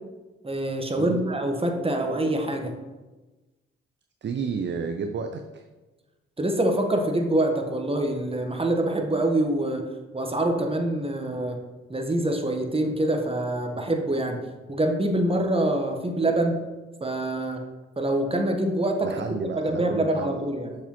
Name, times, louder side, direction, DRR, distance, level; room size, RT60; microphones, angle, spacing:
voice 1, 0.4-2.7 6.4-9.8 10.1-11.6 11.9-14.4 14.7-16.6 17.0-17.6 18.0-19.2 19.6-20.8, right 1 dB, 20° right, 3 dB, 1.2 m, -25 dB
voice 2, 4.2-5.6 19.0-20.4, right 5 dB, 35° right, 6 dB, 0.5 m, -31 dB
6.7 x 4.9 x 3.0 m, 1.2 s
hypercardioid pair, 40°, 31 cm